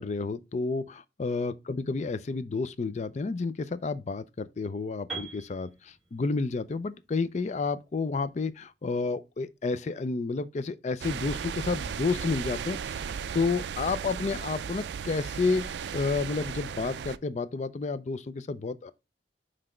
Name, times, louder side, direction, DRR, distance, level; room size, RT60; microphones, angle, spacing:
voice 1, 0.0-13.0 13.3-18.9, left 4 dB, 40° left, 0.4 m, -30 dB
Piano, 5.1-9.0, right 5 dB, ahead, 2.4 m, -45 dB
sound 1, 11.0-17.2, right 7 dB, 70° right, 0.3 m, -36 dB
5.8 x 3.3 x 4.9 m
head